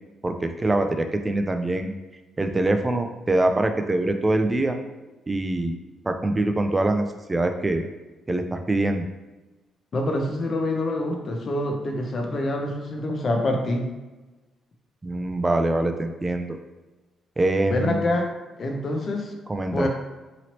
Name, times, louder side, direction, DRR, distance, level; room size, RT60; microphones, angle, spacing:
voice 1, 0.2-1.9 2.4-4.8 5.3-5.7 6.1-7.8 8.3-9.0 15.0-16.6 17.4-18.1 19.5-19.9, right 2 dB, 20° right, 6 dB, 0.3 m, -24 dB
voice 2, 9.9-13.9 17.7-18.3 18.6-19.4 19.7-19.9, left 1 dB, 45° left, 2 dB, 0.6 m, -26 dB
3.0 x 2.7 x 2.9 m, 1.2 s
cardioid pair, 90°, 0 cm